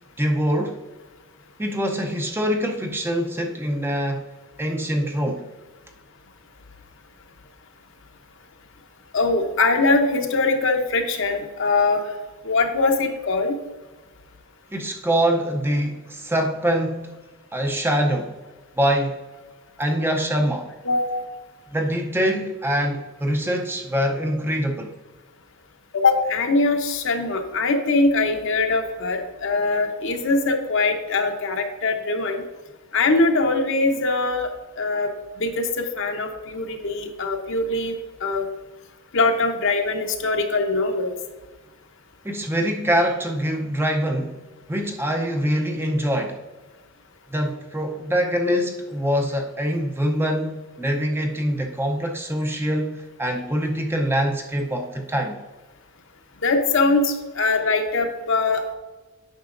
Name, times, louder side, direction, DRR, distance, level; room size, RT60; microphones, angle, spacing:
voice 1, 0.2-0.8 1.6-4.3 4.6-5.5 14.7-17.1 17.5-18.4 18.8-19.2 19.8-20.7 21.7-24.9 42.2-44.4 44.7-46.4 47.3-55.4, equal, 10° right, 3 dB, 0.5 m, -24 dB
voice 2, 9.1-12.0 12.4-13.6 20.8-21.3 25.9-32.4 32.9-34.5 34.8-35.1 35.4-38.5 39.1-41.1 56.4-58.7, left 3 dB, 60° left, 5 dB, 0.8 m, -22 dB
9.1 x 6.1 x 2.5 m, 1.2 s
head